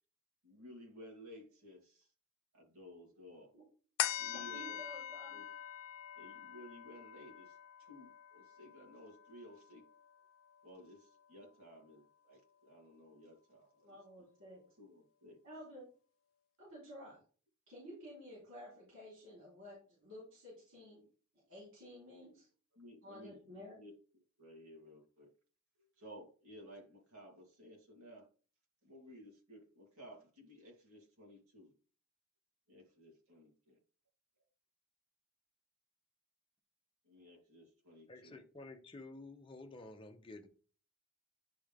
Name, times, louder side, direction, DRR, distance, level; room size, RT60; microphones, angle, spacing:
voice 1, 0.4-2.1 2.5-3.5 4.2-4.8 5.3-5.4 6.1-9.8 10.6-14.3 14.8-15.4 22.7-23.9 24.4-25.3 25.8-28.3 28.8-31.7 32.7-33.8 37.0-38.4, equal, 80° right, -2 dB, 3.0 m, -56 dB
sound 1, 4.0-10.7 11.2-11.3, left 11 dB, 70° left, 0.4 m, -44 dB
voice 2, 4.5-5.3 13.8-14.6 15.4-15.8 16.6-17.2 17.7-21.0 21.5-22.5 23.0-23.8, equal, 65° right, -6 dB, 3.9 m, -52 dB
voice 3, 38.1-40.5, left 2 dB, 25° left, 4 dB, 0.8 m, -51 dB
10.0 x 3.5 x 3.6 m, 0.40 s
head